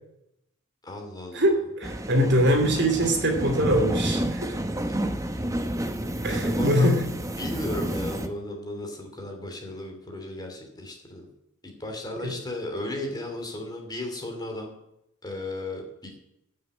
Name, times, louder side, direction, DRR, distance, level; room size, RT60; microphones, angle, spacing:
voice 1, 0.8-1.6 6.4-7.0 7.3-11.3 11.6-14.7 15.2-16.1, left 1 dB, 20° left, 2 dB, 2.8 m, -35 dB
voice 2, 1.3-4.6 6.2-7.0 12.2-12.4, equal, 55° right, 3 dB, 2.7 m, -23 dB
sound 1, 1.8-8.3, right 1 dB, 15° right, 0.8 m, -30 dB
14.0 x 6.6 x 8.2 m, 0.81 s
head